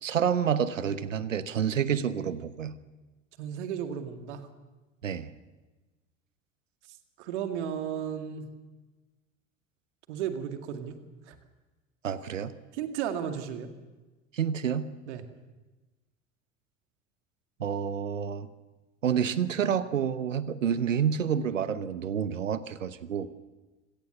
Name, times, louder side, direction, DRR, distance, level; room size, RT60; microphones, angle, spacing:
voice 1, 0.0-2.8 5.0-5.3 12.0-12.5 14.3-14.9 17.6-18.5 19.0-23.3, right 8 dB, 75° right, 15 dB, 1.1 m, -28 dB
voice 2, 3.4-4.5 7.2-8.5 10.1-11.0 11.3-11.4 12.7-13.7 15.1-15.2, right 8 dB, 60° right, 7 dB, 2.2 m, -34 dB
26.0 x 17.5 x 7.0 m, 1.2 s
figure-of-eight pair, 70°, 38 cm